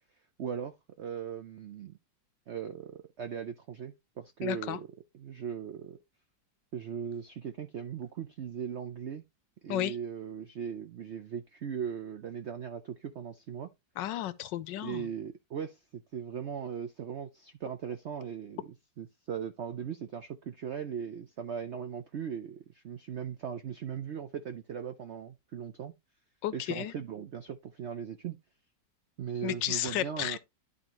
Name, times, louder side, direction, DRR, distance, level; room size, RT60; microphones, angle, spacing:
voice 1, 0.4-2.0 2.5-4.9 5.1-6.0 6.7-9.2 9.6-13.7 14.8-25.9 26.5-28.4 29.2-30.4, right 7 dB, 75° right, 0.6 m, -39 dB
voice 2, 4.4-4.8 9.7-10.0 14.0-15.1 26.4-26.9 29.4-30.4, left 13 dB, 85° left, 1.3 m, -33 dB
11.0 x 4.3 x 3.0 m
omnidirectional pair, 2.0 m